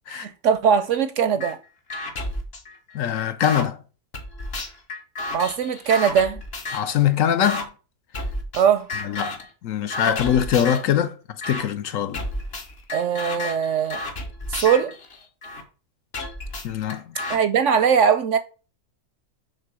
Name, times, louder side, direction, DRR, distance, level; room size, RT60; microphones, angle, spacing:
voice 1, 0.1-1.6 5.3-6.4 8.5-8.9 12.9-14.0 14.5-15.0 17.3-18.4, right 7 dB, 65° right, 0.8 m, -20 dB
sound 1, 1.4-1.5 1.9-3.6 4.1-7.0 7.4-7.6 8.1-8.6 8.9-9.5 9.9-10.9 11.4-11.6 12.1-15.6 16.1-17.4, left 2 dB, 45° left, 1.3 m, -32 dB
voice 2, 2.9-3.8 6.7-7.7 9.0-9.4 9.6-11.1 11.5-12.2 16.6-17.0, left 9 dB, 65° left, 0.9 m, -22 dB
6.7 x 3.6 x 6.0 m
omnidirectional pair, 1.6 m